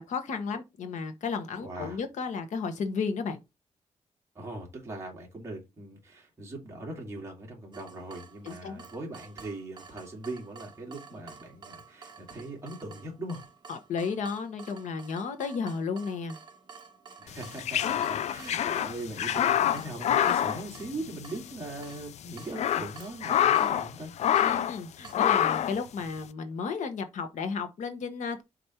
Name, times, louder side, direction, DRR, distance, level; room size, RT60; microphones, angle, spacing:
voice 1, 0.0-3.4 8.4-8.8 13.7-16.4 24.4-28.4, left 5 dB, 85° left, 1.2 m, -33 dB
voice 2, 1.6-2.0 4.3-13.4 17.2-24.1, right 2 dB, 20° right, 2.4 m, -40 dB
Water tap faucet / Drip, 7.7-25.1, right 5 dB, 40° right, 1.1 m, -51 dB
sound 1, 17.4-21.4 21.7-21.8 22.3-23.9 24.2-24.8 25.1-25.8, left 10 dB, 65° left, 0.4 m, -26 dB
5.3 x 4.2 x 4.4 m
wide cardioid pair, 170°, 12 cm